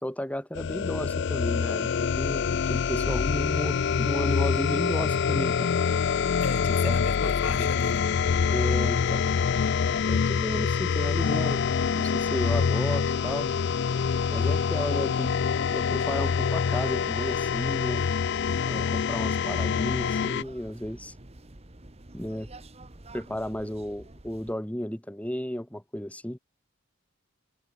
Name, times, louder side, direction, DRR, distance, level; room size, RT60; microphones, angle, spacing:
voice 1, 0.0-5.7 6.7-7.7 8.5-9.3 10.0-11.6 11.9-13.5 14.3-15.4 15.7-18.0 18.6-21.1 22.1-22.5 23.1-26.4, equal, 5° left, 1.3 m, -33 dB
sound 1, 0.5-20.4, left 6 dB, 55° left, 0.4 m, -26 dB
voice 2, 6.4-8.2, left 3 dB, 80° left, 1.1 m, -34 dB
sound 2, 8.9-24.5, right 2 dB, 30° right, 1.4 m, -49 dB
head